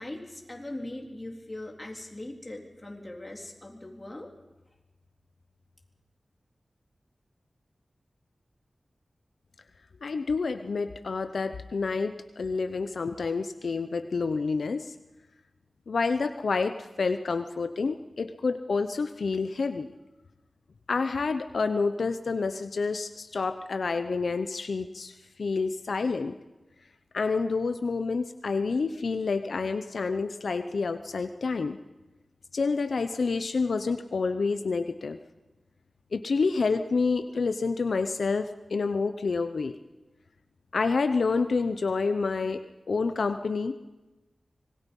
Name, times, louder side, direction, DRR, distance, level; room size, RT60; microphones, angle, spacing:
voice 1, 0.0-4.3, left 1 dB, 20° left, 1 dB, 3.7 m, -40 dB
voice 2, 10.0-14.9 15.9-19.9 20.9-26.4 27.1-31.8 32.5-35.2 36.1-39.7 40.7-43.7, left 4 dB, 80° left, 9 dB, 0.7 m, -28 dB
25.0 x 20.5 x 5.4 m, 1.1 s
wide cardioid pair, 80°, 0 cm